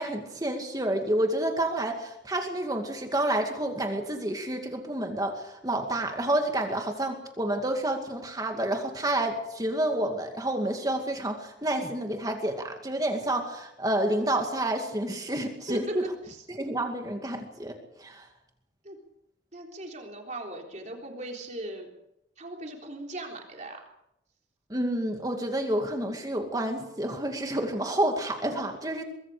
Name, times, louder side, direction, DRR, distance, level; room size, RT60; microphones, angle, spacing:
voice 1, 0.0-16.1 16.5-18.3 24.7-29.0, right 1 dB, 20° right, 4 dB, 2.3 m, -29 dB
voice 2, 19.5-21.9 22.4-23.8, right 1 dB, 40° right, 1 dB, 3.7 m, -38 dB
24.0 x 23.0 x 5.1 m, 0.80 s
head